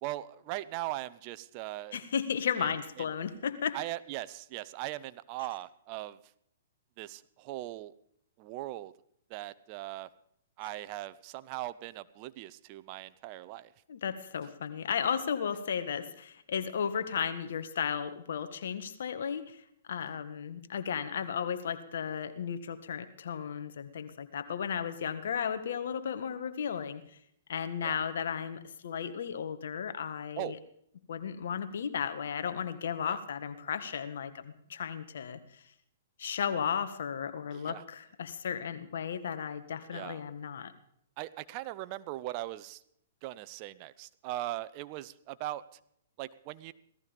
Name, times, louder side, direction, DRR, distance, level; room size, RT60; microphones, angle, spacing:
voice 1, 0.0-2.0 2.6-2.7 3.0-3.1 3.7-6.2 7.0-7.9 8.4-8.9 9.3-10.1 10.6-13.7 27.8-28.0 30.4-30.6 33.0-33.2 37.5-37.8 39.9-40.2 41.2-42.8 43.2-45.6 46.2-46.7, right 16 dB, 40° right, 15 dB, 0.7 m, -39 dB
voice 2, 1.9-3.8 13.9-27.2 27.5-30.6 31.1-35.6 36.2-40.7, left 7 dB, 70° left, 11 dB, 1.7 m, -34 dB
17.0 x 14.0 x 5.3 m, 0.70 s
hypercardioid pair, 140°, 0 cm